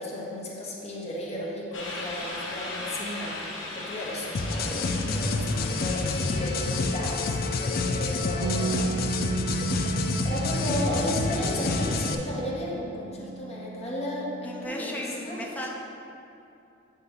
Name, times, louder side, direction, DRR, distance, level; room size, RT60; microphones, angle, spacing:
voice 1, 0.0-8.8 10.2-15.6, left 1 dB, 35° left, -4 dB, 1.1 m, -34 dB
sound 1, 1.7-7.2, left 2 dB, 65° left, 1.3 m, -38 dB
sound 2, 4.3-12.1, left 3 dB, 50° left, 0.5 m, -28 dB
Bass guitar, 8.4-14.7, right 4 dB, 80° right, 0.3 m, -35 dB
voice 2, 14.4-15.7, equal, 10° left, -1 dB, 0.6 m, -36 dB
8.0 x 3.3 x 5.7 m, 2.7 s
head